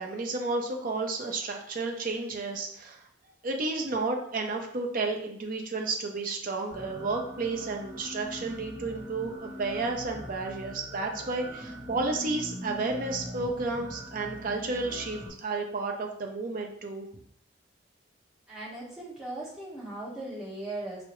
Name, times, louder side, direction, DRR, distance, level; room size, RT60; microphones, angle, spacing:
voice 1, 0.0-3.0 3.4-17.1, right 3 dB, 45° right, 2 dB, 0.5 m, -32 dB
sound 1, 6.7-15.3, equal, 20° right, 1.0 m, -42 dB
voice 2, 18.5-21.0, right 2 dB, 5° right, -9 dB, 1.2 m, -38 dB
4.6 x 2.0 x 3.0 m, 0.68 s
head